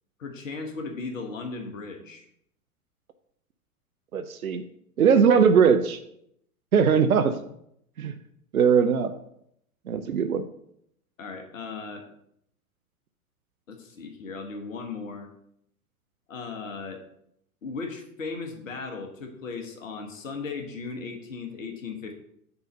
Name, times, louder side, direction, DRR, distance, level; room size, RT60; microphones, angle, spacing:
voice 1, 0.2-2.3 11.2-12.0 13.7-15.3 16.3-17.0 17.6-22.1, left 4 dB, 60° left, 4 dB, 1.3 m, -36 dB
voice 2, 4.1-4.6 5.0-6.0 6.7-7.3 8.0-8.1 8.5-9.1 9.9-10.4, right 6 dB, 75° right, 9 dB, 0.6 m, -20 dB
6.7 x 3.9 x 5.5 m, 0.72 s
figure-of-eight pair, 100°, 43 cm